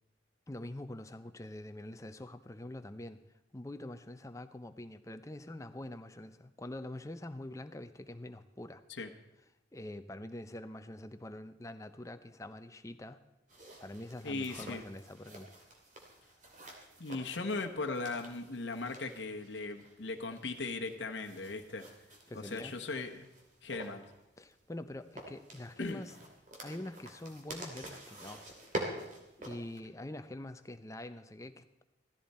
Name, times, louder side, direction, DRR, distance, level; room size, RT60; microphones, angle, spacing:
voice 1, 0.5-3.2 3.5-8.8 9.7-13.2 13.8-15.5 22.3-22.8 24.4-26.1 26.6-28.4 29.4-31.8, left 1 dB, 15° left, 10 dB, 0.6 m, -45 dB
sound 1, 13.5-29.8, right 1 dB, 40° right, 2.5 m, -47 dB
voice 2, 14.2-14.8 17.0-21.9 22.3-23.3 23.6-24.0 25.8-26.0, left 3 dB, 70° left, 3 dB, 1.1 m, -38 dB
16.0 x 14.0 x 4.3 m, 0.91 s
head